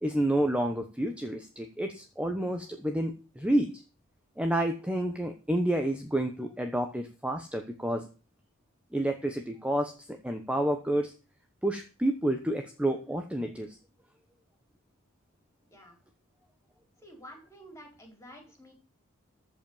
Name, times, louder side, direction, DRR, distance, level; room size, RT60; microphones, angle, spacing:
voice 1, 0.0-3.8 4.4-8.1 8.9-11.1 11.6-13.8, right 1 dB, 5° right, 5 dB, 1.0 m, -29 dB
voice 2, 17.0-18.7, equal, 15° left, 2 dB, 4.3 m, -50 dB
14.5 x 5.4 x 7.2 m, 0.34 s
head